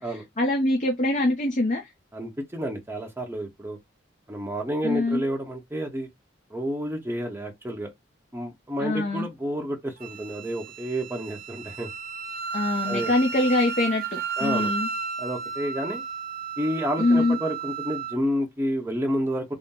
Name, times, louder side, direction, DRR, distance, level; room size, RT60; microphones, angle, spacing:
voice 1, 0.0-1.9 4.8-5.2 8.8-9.3 12.5-14.9 17.0-17.4, left 2 dB, 40° left, 0.8 m, -24 dB
voice 2, 2.1-3.8 4.3-6.1 6.5-7.9 8.3-11.9 12.9-13.1 14.4-14.7 15.2-16.0 16.6-19.5, equal, 10° right, 0.9 m, -30 dB
Wind instrument woodwind instrument, 10.0-18.2, right 5 dB, 50° right, 0.5 m, -33 dB
4.1 x 2.2 x 3.6 m
head